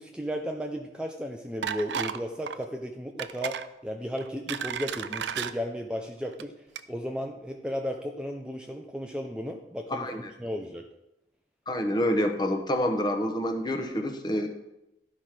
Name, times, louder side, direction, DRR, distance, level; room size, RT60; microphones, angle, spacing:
voice 1, 0.0-6.5 6.9-10.8, equal, 5° right, 2 dB, 0.5 m, -34 dB
sound 1, 1.6-2.2 2.5-2.7 3.2-3.7 4.2-5.5 6.3-6.4 6.7-6.8, right 8 dB, 85° right, 0.4 m, -33 dB
voice 2, 9.9-10.3 11.7-14.5, equal, 25° left, 6 dB, 0.9 m, -27 dB
11.5 x 4.9 x 5.9 m, 0.91 s
head